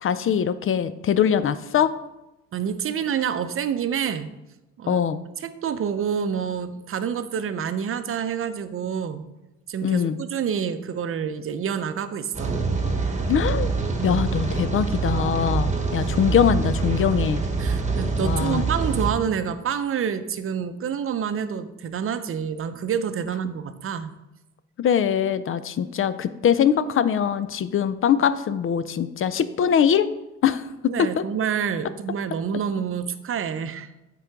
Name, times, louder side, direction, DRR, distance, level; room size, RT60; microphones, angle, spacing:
voice 1, 0.0-1.9 4.9-5.2 9.8-10.2 13.3-13.7 14.0-17.4 18.2-18.6 24.8-30.1 30.4-31.2, left 8 dB, 45° left, 14 dB, 0.4 m, -22 dB
voice 2, 2.5-4.3 4.8-5.0 5.4-9.2 9.7-12.6 14.0-14.2 17.6-24.1 30.9-33.9, right 7 dB, 45° right, 11 dB, 0.6 m, -28 dB
Rain, 12.3-19.1, right 4 dB, 25° right, 1.2 m, -25 dB
8.2 x 3.8 x 4.6 m, 0.96 s
cardioid pair, 90°, 30 cm